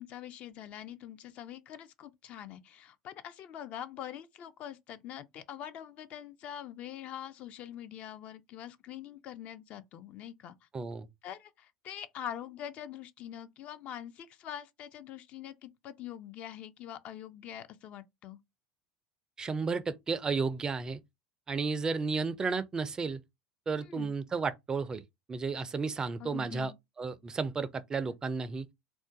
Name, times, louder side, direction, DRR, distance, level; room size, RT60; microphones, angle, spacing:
voice 1, 0.0-10.6 11.2-18.4 23.8-24.1 26.2-26.7, left 10 dB, 50° left, 0.4 m, -44 dB
voice 2, 10.7-11.1 19.4-21.0 21.5-23.2 23.7-25.0 25.3-26.7 27.0-28.7, right 4 dB, 25° right, 0.3 m, -33 dB
2.4 x 2.1 x 3.7 m
hypercardioid pair, 80°, 3 cm